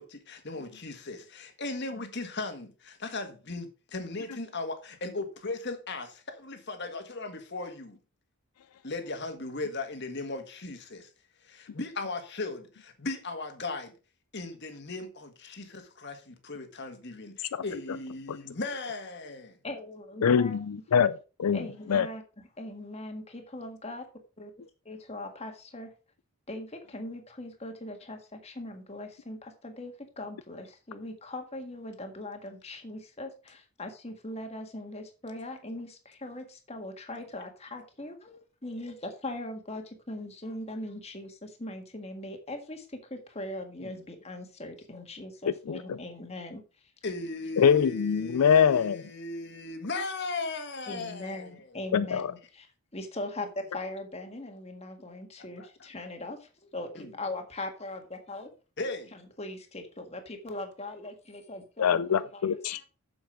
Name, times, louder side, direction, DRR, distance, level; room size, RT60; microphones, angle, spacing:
voice 1, 0.0-8.0 8.8-11.1 11.4-13.9 14.3-19.5 43.8-44.0 47.0-51.5 55.6-55.7 57.0-57.1 58.8-59.1 62.7-62.8, left 3 dB, 50° left, 1.7 m, -37 dB
voice 2, 19.6-20.6 21.5-22.2 22.6-24.1 24.4-24.5 24.9-25.9 26.5-46.6 50.9-52.7 52.9-58.5 59.1-62.6, left 1 dB, 30° left, 1.7 m, -40 dB
voice 3, 20.2-21.6 21.9-22.1 45.7-46.0 47.6-49.0 51.9-52.3 61.8-62.8, left 7 dB, 90° left, 0.4 m, -24 dB
7.7 x 7.1 x 5.0 m
head